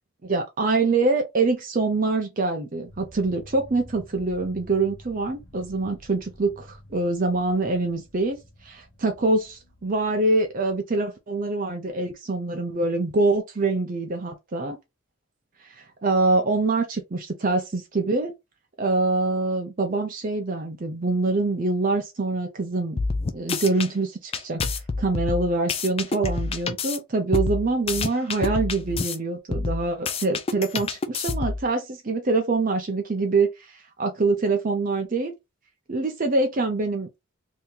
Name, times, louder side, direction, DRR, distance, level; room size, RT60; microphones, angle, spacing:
voice 1, 0.2-8.4 8.6-14.8 15.6-18.3 18.8-23.0 23.3-35.3 35.9-37.1, right 3 dB, 40° right, 0.5 m, -25 dB
sound 1, 2.9-10.8, equal, 50° left, 1.0 m, -50 dB
sound 2, 23.0-23.9 24.3-27.0 27.3-29.2 29.5-31.7, left 4 dB, 25° left, 0.3 m, -27 dB
2.8 x 2.7 x 3.7 m
head